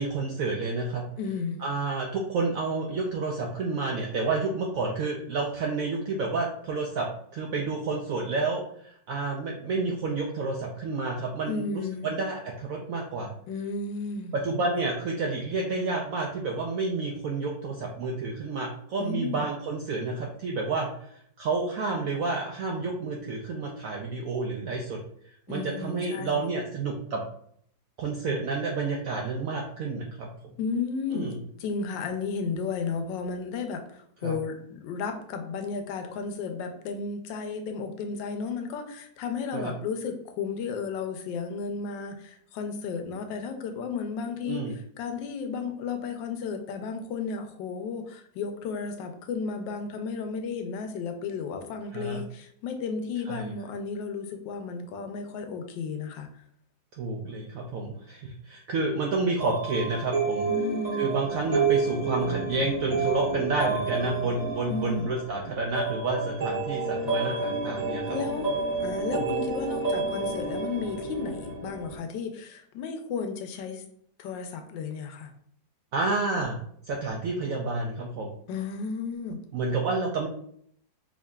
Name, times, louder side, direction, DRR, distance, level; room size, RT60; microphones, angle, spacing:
voice 1, 0.0-1.0 1.6-13.3 14.3-27.2 28.0-30.3 31.1-31.4 34.2-34.3 39.5-39.7 44.4-44.8 51.9-52.2 53.3-53.5 57.0-60.5 60.9-68.2 69.1-69.3 75.9-76.6 76.9-78.3 79.5-80.3, right 3 dB, 75° right, 0 dB, 0.7 m, -30 dB
voice 2, 1.2-1.6 11.5-12.1 13.5-14.3 19.0-19.4 25.5-26.4 30.6-31.3 31.6-56.4 60.5-61.1 64.7-65.1 68.1-68.5 68.8-73.8 74.2-75.3 78.5-79.4, left 5 dB, 85° left, 6 dB, 1.3 m, -33 dB
sound 1, 59.4-72.0, right 4 dB, 25° right, 1.2 m, -30 dB
4.7 x 2.8 x 2.2 m, 0.65 s
omnidirectional pair, 1.9 m